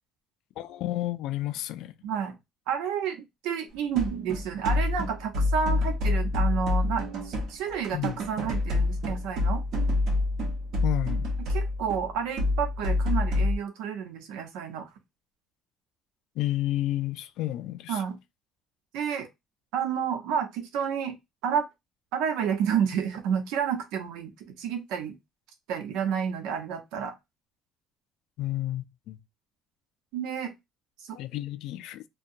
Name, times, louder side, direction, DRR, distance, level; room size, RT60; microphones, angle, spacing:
voice 1, 0.6-1.9 7.9-8.2 10.8-11.3 16.4-18.0 28.4-29.2 31.1-32.1, left 15 dB, 70° left, 0.3 m, -31 dB
voice 2, 2.0-2.4 2.7-9.6 11.5-14.9 17.9-18.2 18.9-19.3 19.7-21.2 21.4-21.7 22.1-24.3 24.6-25.2 25.7-27.1 30.1-30.5 31.0-31.2, right 7 dB, 85° right, 0.7 m, -30 dB
sound 1, 3.9-13.6, left 2 dB, 55° right, 0.8 m, -27 dB
2.7 x 2.2 x 2.6 m
cardioid pair, 140°, 0 cm